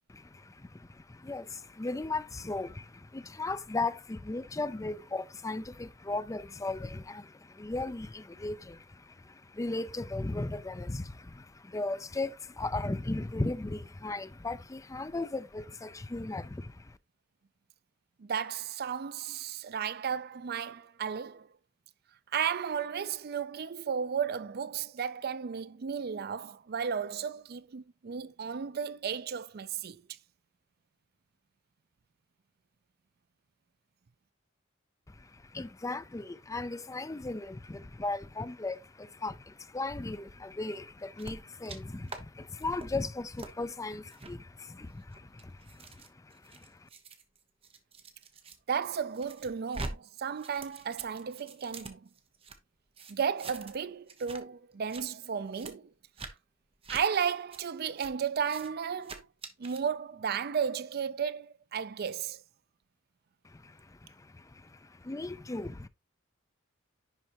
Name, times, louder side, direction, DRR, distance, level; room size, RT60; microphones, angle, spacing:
voice 1, 0.1-17.0 35.1-46.9 63.4-65.9, left 2 dB, 15° left, 0.4 m, -37 dB
voice 2, 18.2-21.5 22.3-30.0 48.7-52.1 53.1-55.8 56.9-59.2 59.6-62.4, right 7 dB, 50° right, 0.4 m, -34 dB
sound 1, 41.2-41.8 42.1-42.2 42.6-42.9 43.4-43.5 44.1-44.3 45.0-48.6 48.9-49.9 50.2-52.6 53.0-53.8 54.1-54.4 54.7-55.0 55.5-55.7 56.2-56.3 56.8-57.0 57.5-57.6 58.0-58.1 58.4-58.7 59.0-59.8, right 3 dB, 30° right, 1.0 m, -45 dB
10.5 x 4.5 x 2.9 m
head